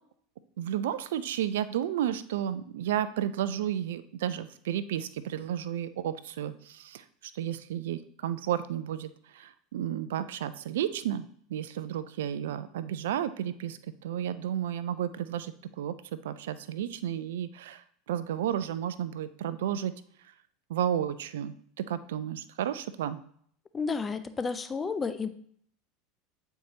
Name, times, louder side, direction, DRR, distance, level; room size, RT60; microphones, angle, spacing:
voice 1, 0.6-7.0 7.3-15.9 16.2-19.9 20.7-23.2, right 10 dB, 70° right, 14 dB, 0.3 m, -32 dB
voice 2, 23.7-25.3, left 5 dB, 25° left, 11 dB, 0.5 m, -31 dB
8.1 x 4.5 x 2.8 m, 0.62 s
hypercardioid pair, 80°, 0 cm